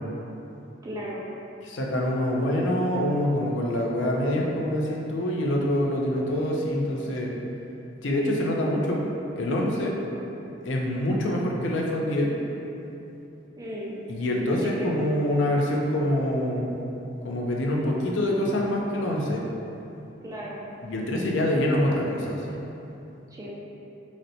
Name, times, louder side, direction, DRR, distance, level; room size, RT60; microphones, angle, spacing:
voice 1, 0.8-1.2 13.6-14.0 14.6-15.1 20.2-20.6 23.3-23.5, equal, 20° right, -5 dB, 0.3 m, -35 dB
voice 2, 1.6-7.3 8.0-9.0 9.4-10.0 10.6-12.3 14.1-16.8 17.2-19.4 20.8-22.6, left 1 dB, 85° left, -1 dB, 0.5 m, -25 dB
4.0 x 2.1 x 2.7 m, 3.0 s
head